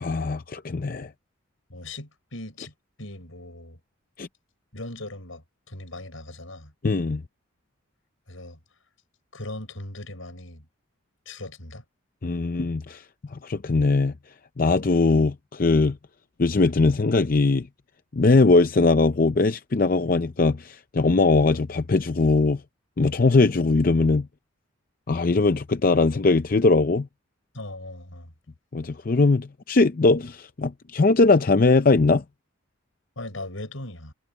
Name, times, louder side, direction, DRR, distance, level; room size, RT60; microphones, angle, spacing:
voice 1, 0.0-1.1 4.2-4.3 6.8-7.2 12.2-13.0 13.3-14.1 14.6-16.0 16.4-17.7 18.1-22.6 23.0-24.3 25.1-27.1 28.7-32.2, left 3 dB, 45° left, 0.5 m, -20 dB
voice 2, 1.7-3.8 4.7-6.7 8.3-8.6 9.3-10.7 11.3-11.8 27.5-28.3 33.2-34.1, left 2 dB, 80° left, 6.0 m, -39 dB
head